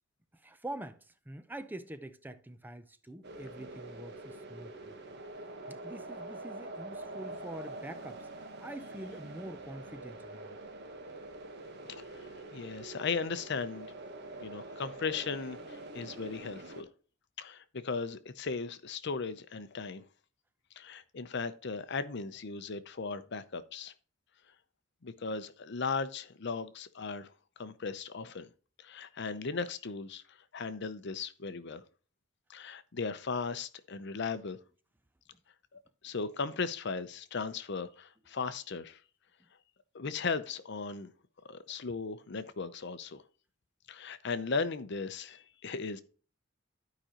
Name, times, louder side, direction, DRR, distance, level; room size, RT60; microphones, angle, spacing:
voice 1, 0.3-5.0 5.7-8.3 8.6-10.6, right 1 dB, 10° right, 0.5 m, -45 dB
sound 1, 3.2-16.8, right 2 dB, 55° right, 1.3 m, -45 dB
voice 2, 12.1-13.9 14.4-16.9 17.4-20.0 20.8-23.9 25.0-27.3 27.6-28.5 28.8-31.8 32.5-34.6 36.0-39.0 39.9-41.1 41.5-43.2 43.9-46.0, left 4 dB, 60° left, 0.7 m, -37 dB
12.5 x 5.0 x 2.9 m
head